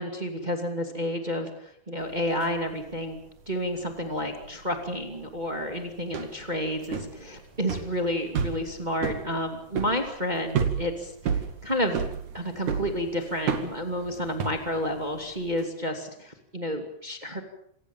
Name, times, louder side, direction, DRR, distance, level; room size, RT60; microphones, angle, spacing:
voice 1, 0.0-3.2 3.4-12.0 12.3-17.4, equal, 20° right, 4 dB, 1.2 m, -30 dB
sound 1, 2.0-2.5 2.7-3.2 3.6-15.6, right 6 dB, 50° right, 3.0 m, -31 dB
27.0 x 18.0 x 7.3 m, 0.69 s
omnidirectional pair, 5.3 m